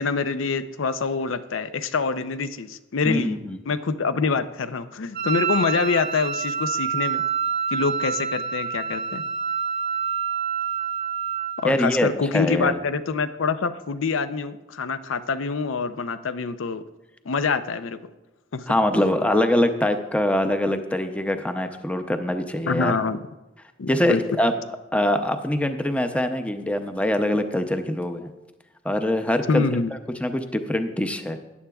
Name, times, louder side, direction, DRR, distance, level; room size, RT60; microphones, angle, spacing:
voice 1, 0.0-3.4 3.7-7.2 7.7-9.2 11.6-16.8 17.2-18.1 18.5-18.7 22.7-23.2 23.8-24.2 29.5-29.9, left 4 dB, 75° left, 12 dB, 0.5 m, -25 dB
voice 2, 3.0-3.6 11.6-12.8 18.7-22.9 23.9-24.5 24.9-28.3 28.8-29.6 30.2-31.4, left 1 dB, 5° left, 7 dB, 0.5 m, -23 dB
Wind instrument woodwind instrument, 5.1-11.7, right 7 dB, 55° right, 0.6 m, -27 dB
14.0 x 10.0 x 2.3 m, 1.1 s
head